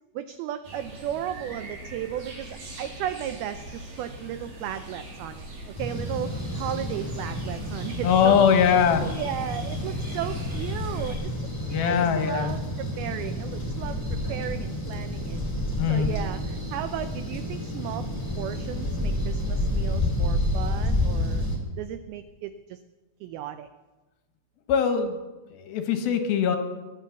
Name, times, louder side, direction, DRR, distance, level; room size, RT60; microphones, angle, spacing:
voice 1, 0.2-5.5 5.8-11.3 11.7-15.4 15.9-18.1 18.4-21.5 21.8-22.8 23.2-23.7, right 10 dB, 85° right, 10 dB, 2.2 m, -35 dB
sound 1, 0.6-11.2, right 1 dB, 50° right, 4.6 m, -41 dB
sound 2, 5.7-21.6, left 1 dB, 5° left, 2.2 m, -30 dB
voice 2, 8.0-9.1 11.7-12.5 15.8-16.1 24.7-25.2 25.5-26.6, left 7 dB, 70° left, 7 dB, 2.6 m, -21 dB
21.5 x 9.2 x 7.0 m, 1.2 s
omnidirectional pair, 5.1 m